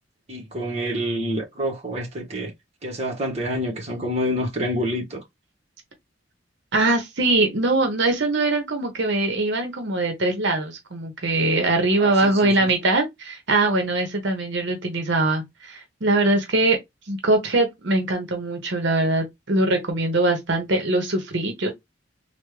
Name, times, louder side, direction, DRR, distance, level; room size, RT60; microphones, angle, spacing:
voice 1, 0.3-2.5 2.8-5.2 12.0-12.7, equal, 35° right, 1.0 m, -27 dB
voice 2, 6.7-16.8 17.1-21.7, right 2 dB, 65° right, 0.9 m, -22 dB
3.5 x 2.2 x 3.1 m
head